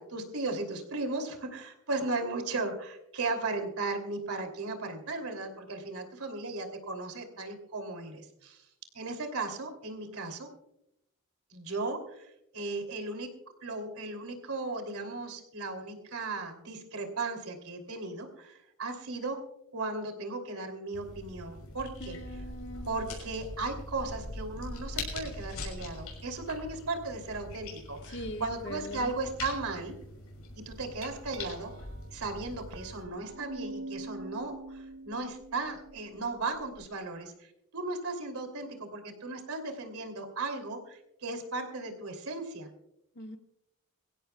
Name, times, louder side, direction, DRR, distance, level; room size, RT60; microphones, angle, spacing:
voice 1, 0.0-8.6 8.9-10.5 11.5-13.3 13.6-19.4 19.7-22.2 22.8-30.0 30.5-31.7 32.1-42.7, right 3 dB, 80° right, 5 dB, 2.9 m, -36 dB
sound 1, 20.9-33.0, left 2 dB, 75° left, 6.1 m, -42 dB
voice 2, 22.0-23.1 28.1-29.1 43.2-43.4, left 1 dB, 55° left, 4 dB, 1.5 m, -41 dB
Glass, 30.7-36.9, right 2 dB, 60° right, 0.8 m, -45 dB
24.0 x 16.0 x 2.3 m, 0.81 s
head